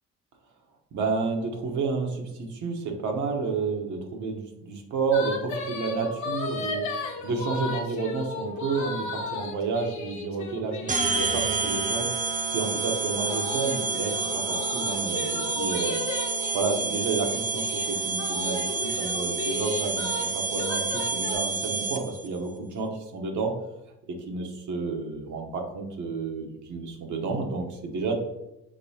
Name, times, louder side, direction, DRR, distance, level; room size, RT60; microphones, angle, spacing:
voice 1, 0.9-12.1 12.5-16.0 16.5-23.5 24.1-28.2, right 4 dB, 75° right, 3 dB, 1.0 m, -30 dB
sound 1, 5.1-12.0 13.2-20.3 20.6-21.3, left 3 dB, 65° left, 1.1 m, -35 dB
sound 2, 10.9-22.3, right 4 dB, 25° right, 0.5 m, -29 dB
5.2 x 3.6 x 2.8 m, 0.92 s
cardioid pair, 90°, 30 cm